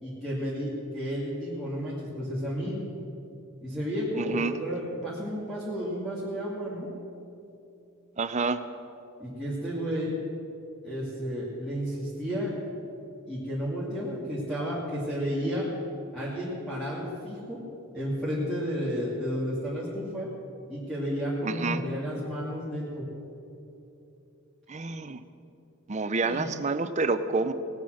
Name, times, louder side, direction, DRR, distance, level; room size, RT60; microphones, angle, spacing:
voice 1, 0.0-2.8 3.6-6.9 9.2-10.1 10.8-12.5 13.3-15.7 16.1-17.6 17.9-20.3 20.7-23.0 26.2-26.4, equal, ahead, -9 dB, 2.5 m, -32 dB
voice 2, 4.2-4.5 8.2-8.6 21.4-21.8 24.7-25.2 25.9-27.5, right 3 dB, 35° right, 11 dB, 0.6 m, -28 dB
18.5 x 9.2 x 6.4 m, 2.8 s
head